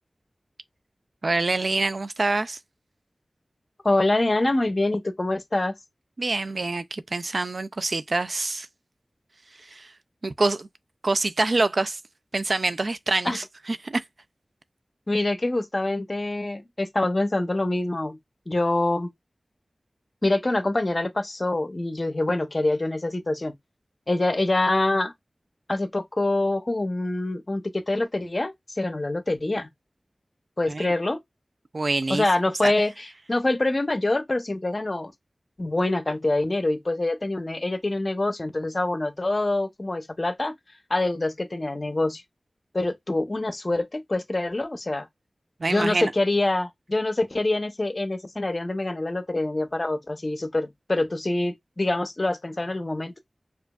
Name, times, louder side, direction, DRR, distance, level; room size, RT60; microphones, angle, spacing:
voice 1, 1.2-2.6 6.2-8.7 9.7-9.9 10.2-10.7 11.0-12.0 12.3-14.0 30.7-30.9 31.7-32.2 32.6-32.7 45.6-46.1, right 3 dB, 60° right, 0.3 m, -26 dB
voice 2, 3.8-5.7 13.2-13.4 15.1-18.2 18.5-19.1 20.2-23.5 24.1-25.1 25.7-29.7 30.6-31.2 32.1-35.1 35.6-40.5 40.9-42.2 42.7-45.1 45.7-53.1, left 2 dB, 40° left, 0.7 m, -25 dB
4.9 x 2.4 x 2.3 m
wide cardioid pair, 60°, 0 cm